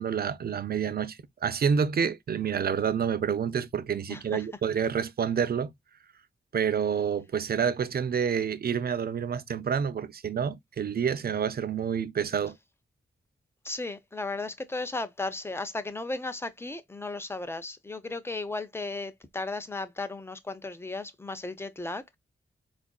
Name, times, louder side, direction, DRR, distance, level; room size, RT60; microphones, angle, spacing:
voice 1, 0.0-5.7 6.5-12.6, right 7 dB, 50° right, 0.5 m, -28 dB
voice 2, 4.1-4.5 13.6-22.2, left 2 dB, 10° left, 0.5 m, -35 dB
4.4 x 2.5 x 2.2 m
wide cardioid pair, 120°, 20 cm